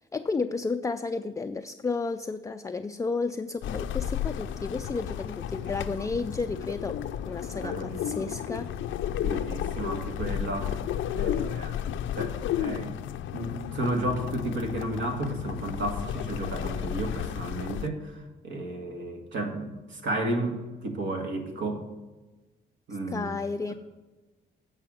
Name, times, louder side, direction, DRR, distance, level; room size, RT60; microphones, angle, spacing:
voice 1, 0.1-8.7 23.1-23.7, left 4 dB, 15° left, 7 dB, 0.4 m, -32 dB
sound 1, 3.6-17.9, left 10 dB, 80° left, 0.6 m, -33 dB
voice 2, 5.6-6.1 7.5-8.2 8.5-8.6 9.2-10.7 11.1-13.0 13.3-21.9 22.9-23.3, right 1 dB, 70° right, 4 dB, 1.8 m, -33 dB
8.6 x 5.5 x 7.5 m, 1.2 s
cardioid pair, 90°, 20 cm